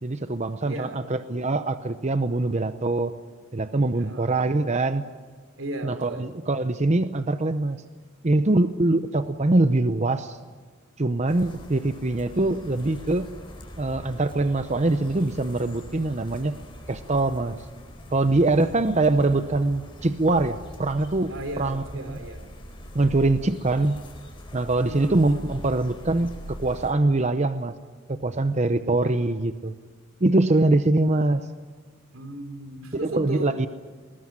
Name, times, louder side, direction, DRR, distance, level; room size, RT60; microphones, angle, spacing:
voice 1, 0.0-3.1 3.5-5.0 5.8-7.8 8.2-10.4 11.0-13.3 13.8-16.6 16.9-17.6 18.1-22.2 22.9-24.0 24.5-27.7 28.1-29.7 30.2-31.5 32.9-33.7, right 2 dB, 35° right, 10 dB, 0.7 m, -23 dB
voice 2, 0.6-1.1 3.9-4.4 5.6-6.3 21.3-22.5 24.8-25.2 28.1-28.2 32.1-33.7, right 1 dB, 80° right, 8 dB, 3.3 m, -36 dB
sound 1, 11.3-26.9, equal, 25° left, 4.4 m, -42 dB
20.5 x 20.5 x 9.9 m, 1.5 s
head